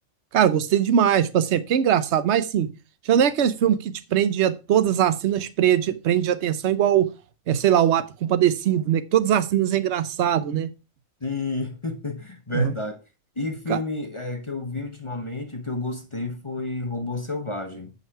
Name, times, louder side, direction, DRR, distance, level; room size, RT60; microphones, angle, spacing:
voice 1, 0.3-2.7 3.0-7.1 7.5-10.7 12.5-12.7 13.7-13.8, right 10 dB, 65° right, 1.0 m, -21 dB
voice 2, 11.2-13.0 13.4-17.9, left 2 dB, 25° left, 0.9 m, -30 dB
9.3 x 5.6 x 4.7 m
omnidirectional pair, 1.3 m